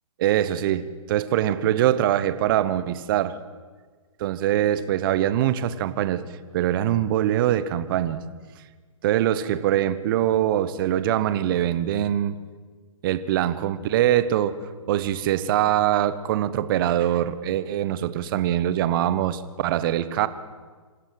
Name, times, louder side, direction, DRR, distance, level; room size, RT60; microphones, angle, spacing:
voice 1, 0.2-3.4 4.2-8.2 9.0-12.4 13.0-14.6 14.9-20.3, right 12 dB, 40° right, 14 dB, 1.2 m, -23 dB
26.0 x 14.5 x 7.7 m, 1.5 s
hypercardioid pair, 145°, 18 cm